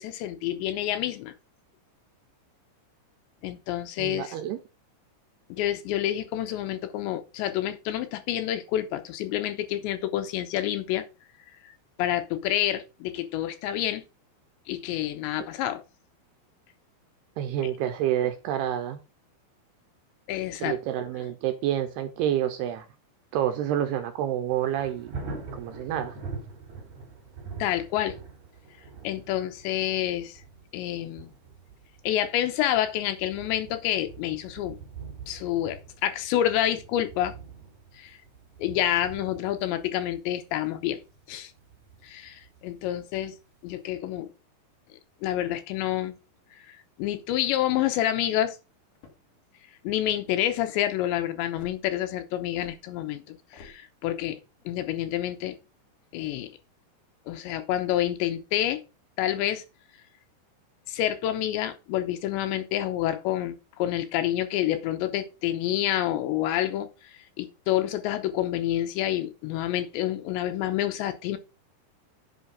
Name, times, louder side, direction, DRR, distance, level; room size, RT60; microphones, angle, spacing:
voice 1, 0.0-1.3 3.4-4.4 5.5-11.0 11.6-11.7 12.0-14.0 14.7-15.8 20.3-20.8 27.6-28.2 29.0-30.4 30.7-31.3 32.0-34.8 35.3-37.3 38.0-38.2 38.6-41.0 41.3-41.5 42.0-43.4 43.6-44.3 45.2-46.1 46.7-48.6 49.8-54.4 54.7-55.6 56.1-56.5 57.3-58.8 59.2-59.6 60.9-66.9 67.4-71.4, left 12 dB, 80° left, 2.9 m, -28 dB
voice 2, 4.0-4.6 17.4-19.0 20.6-22.9 23.3-25.1 25.5-26.1, right 11 dB, 75° right, 2.6 m, -28 dB
Thunder, 24.5-43.3 43.7-43.8, right 4 dB, 45° right, 4.1 m, -44 dB
sound 1, 48.0-48.3 48.9-49.4 50.0-50.4 51.6-51.8 52.6-52.8 53.5-53.8, left 4 dB, 55° left, 2.7 m, -50 dB
8.1 x 5.6 x 5.6 m
omnidirectional pair, 5.4 m